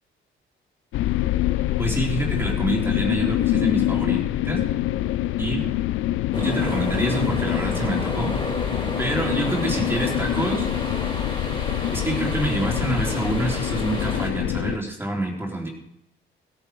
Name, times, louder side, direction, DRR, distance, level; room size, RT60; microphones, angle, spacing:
sound 1, 0.9-14.8, left 14 dB, 90° left, 0.5 m, -25 dB
voice 1, 1.8-4.6 5.4-5.6 6.3-8.3 9.0-10.7 11.9-15.7, right 2 dB, 10° right, -1 dB, 3.5 m, -27 dB
sound 2, 6.3-14.3, left 1 dB, 25° left, 5.7 m, -31 dB
16.0 x 9.8 x 4.7 m, 0.78 s
cardioid pair, 90°, 20 cm